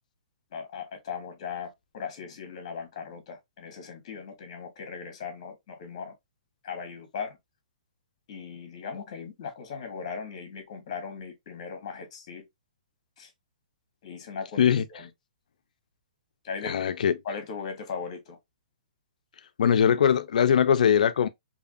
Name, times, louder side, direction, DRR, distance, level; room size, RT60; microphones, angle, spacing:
voice 1, 0.5-6.2 6.6-7.4 8.3-12.4 13.2-13.3 14.0-15.1 16.4-16.9 17.2-18.4, left 6 dB, 40° left, 1.0 m, -38 dB
voice 2, 16.6-17.1 19.6-21.3, left 8 dB, 70° left, 0.4 m, -21 dB
2.7 x 2.4 x 2.5 m
hypercardioid pair, 170°, 4 cm